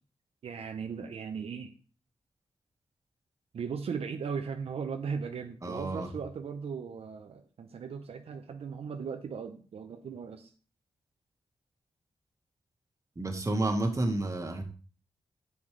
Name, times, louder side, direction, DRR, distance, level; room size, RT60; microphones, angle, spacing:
voice 1, 0.4-1.7 3.5-10.5, right 6 dB, 75° right, 5 dB, 0.7 m, -37 dB
voice 2, 5.6-6.1 13.1-14.6, right 2 dB, 30° right, 4 dB, 1.6 m, -30 dB
7.2 x 7.2 x 3.3 m, 0.40 s
cardioid pair, 65°, 10 cm